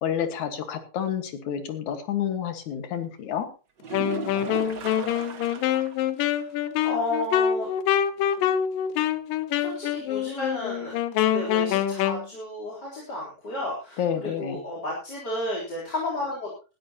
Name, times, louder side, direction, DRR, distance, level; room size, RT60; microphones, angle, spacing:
voice 1, 0.0-3.5 14.0-14.6, left 9 dB, 65° left, 8 dB, 2.8 m, -29 dB
sound 1, 3.8-6.1 6.4-6.5 6.9-7.0 10.8-10.9, right 5 dB, 40° right, 1.8 m, -36 dB
Wind instrument woodwind instrument, 3.9-12.3, left 10 dB, 85° left, 2.6 m, -25 dB
voice 2, 6.8-7.7 9.6-10.9 11.3-16.7, left 1 dB, 30° left, -4 dB, 4.0 m, -32 dB
19.0 x 12.5 x 2.9 m, 0.33 s
omnidirectional pair, 3.8 m